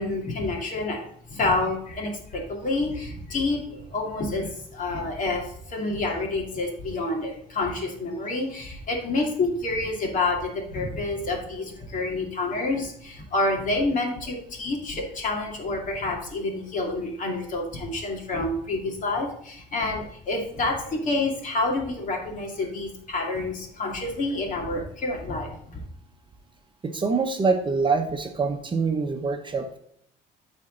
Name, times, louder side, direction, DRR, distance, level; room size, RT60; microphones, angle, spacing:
voice 1, 0.0-25.8, left 2 dB, 50° left, 1 dB, 2.6 m, -28 dB
voice 2, 26.8-29.8, right 4 dB, 30° right, 5 dB, 1.0 m, -25 dB
12.5 x 4.4 x 3.9 m, 0.70 s
cardioid pair, 110°, 17 cm